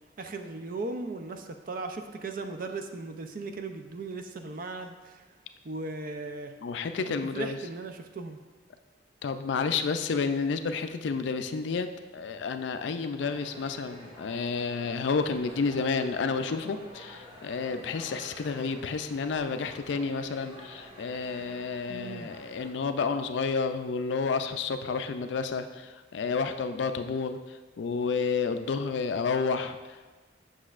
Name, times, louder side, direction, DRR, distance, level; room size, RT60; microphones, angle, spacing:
voice 1, 0.2-5.2 5.6-6.5 7.3-8.4 21.9-22.3, right 3 dB, 50° right, 6 dB, 0.5 m, -37 dB
voice 2, 6.6-7.6 9.2-30.1, left 5 dB, 70° left, 9 dB, 0.4 m, -30 dB
sound 1, 13.2-22.7, equal, 30° right, 1.5 m, -48 dB
7.8 x 6.1 x 2.4 m, 1.3 s
head